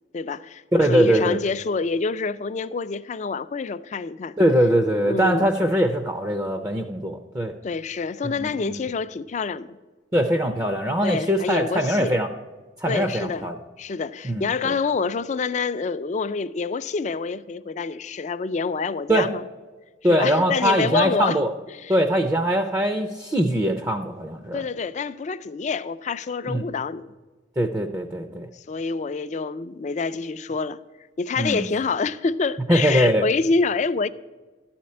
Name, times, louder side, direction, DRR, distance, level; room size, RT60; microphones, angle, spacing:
voice 1, 0.1-4.3 5.0-5.5 7.6-9.8 11.0-12.2 12.9-13.5 13.8-19.4 20.1-21.4 21.7-21.9 24.5-27.1 28.3-30.8 31.2-34.1, left 4 dB, 40° left, 0.4 m, -27 dB
voice 2, 0.7-1.4 4.4-7.5 8.2-8.8 10.1-12.3 12.8-13.6 14.2-14.7 19.1-19.3 20.0-21.5 21.9-24.6 26.5-26.6 27.6-28.5 31.4-31.6 32.7-33.2, equal, 20° right, 0.5 m, -22 dB
12.5 x 4.4 x 8.4 m
head